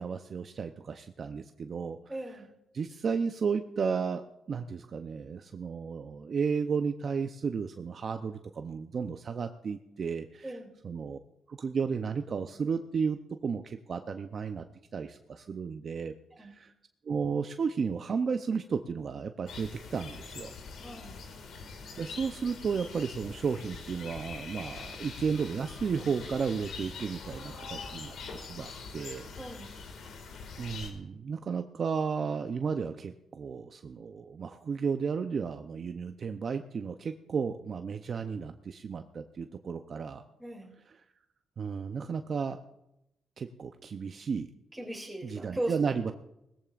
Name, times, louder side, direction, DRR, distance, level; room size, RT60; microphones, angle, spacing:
voice 1, 0.0-2.0 2.7-10.5 10.8-11.2 11.5-14.7 14.9-16.7 17.0-20.5 21.9-29.3 30.6-40.2 41.6-42.6 43.4-44.5 45.2-46.1, right 6 dB, 50° right, 7 dB, 0.6 m, -33 dB
voice 2, 2.1-2.5 10.4-10.7 16.4-16.6 20.8-21.2 29.4-29.8 40.4-40.7 44.7-45.8, right 1 dB, 10° right, 1 dB, 2.8 m, -38 dB
sound 1, 19.5-30.9, left 4 dB, 70° left, 2.0 m, -43 dB
19.0 x 14.5 x 2.5 m, 0.85 s
cardioid pair, 95°, 0 cm